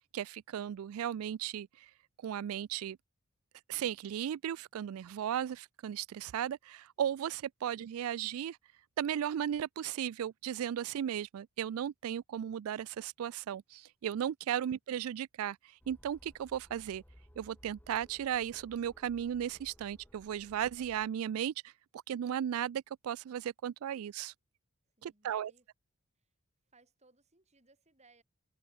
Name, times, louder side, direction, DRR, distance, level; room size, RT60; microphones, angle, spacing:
voice 1, 0.1-1.9 2.2-3.0 3.7-8.6 9.0-17.0 17.4-24.3 25.0-25.5, right 9 dB, 80° right, 0.3 m, -36 dB
sound 1, 15.8-21.1, equal, 10° left, 2.2 m, -60 dB
voice 2, 24.8-25.7 26.2-26.3 26.6-28.2, right 3 dB, 30° right, 7.2 m, -67 dB
head